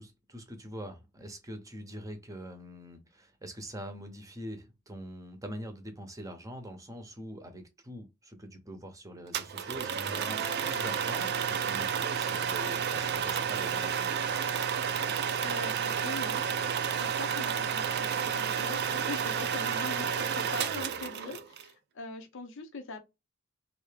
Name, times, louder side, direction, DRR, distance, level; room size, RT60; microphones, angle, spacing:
voice 1, 0.0-14.1 21.2-21.4, equal, 15° right, 0.8 m, -44 dB
sound 1, 9.3-21.6, right 7 dB, 50° right, 0.4 m, -31 dB
voice 2, 15.1-16.4 17.0-23.0, left 3 dB, 65° left, 0.7 m, -42 dB
3.3 x 2.7 x 3.2 m
head